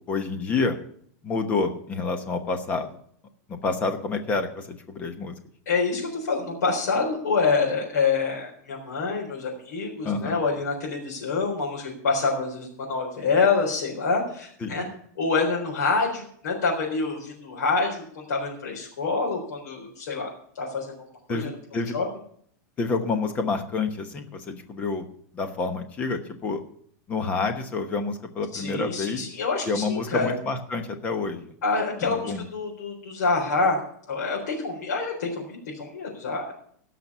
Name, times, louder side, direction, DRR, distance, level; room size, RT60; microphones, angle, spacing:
voice 1, 0.1-0.8 1.2-3.0 3.5-5.3 10.0-10.4 14.6-14.8 21.3-21.9 22.8-25.1 25.3-26.6 27.1-29.2 29.6-31.5 32.0-32.4, left 4 dB, 15° left, 7 dB, 1.0 m, -28 dB
voice 2, 5.7-14.8 15.2-20.3 20.6-21.0 21.3-21.5 21.9-22.0 28.5-30.3 31.6-33.8 34.1-36.5, left 4 dB, 90° left, -4 dB, 4.1 m, -26 dB
17.0 x 6.0 x 6.8 m, 0.62 s
supercardioid pair, 180°, 9 cm